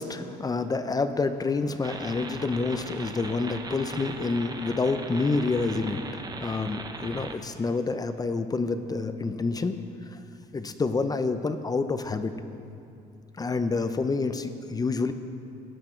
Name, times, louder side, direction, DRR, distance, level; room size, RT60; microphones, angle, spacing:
voice 1, 0.0-9.7 10.1-10.2 10.5-12.4 13.4-15.1, left 3 dB, 20° left, 9 dB, 0.6 m, -28 dB
sound 1, 1.8-7.4, right 3 dB, 25° right, 0.9 m, -39 dB
15.5 x 9.8 x 4.5 m, 2.7 s
cardioid pair, 110°, 17 cm